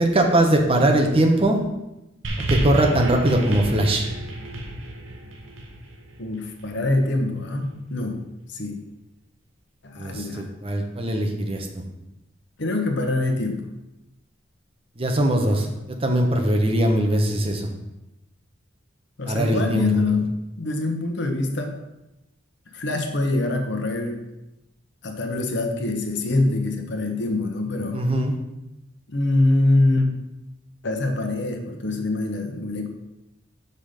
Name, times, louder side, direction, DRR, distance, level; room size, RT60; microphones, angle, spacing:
voice 1, 0.0-1.6 2.5-4.0 10.0-11.8 15.0-17.7 19.3-20.0 27.9-28.3, right 1 dB, 30° right, 2 dB, 0.9 m, -21 dB
sound 1, 2.2-6.8 7.6-7.7, right 1 dB, 75° right, 1.0 m, -30 dB
voice 2, 6.2-8.2 8.5-8.8 9.8-10.5 12.6-13.6 19.2-21.8 22.7-24.2 25.0-28.0 29.1-30.1 30.8-32.9, left 2 dB, 65° left, 4 dB, 1.0 m, -24 dB
5.9 x 5.4 x 5.0 m, 0.93 s
head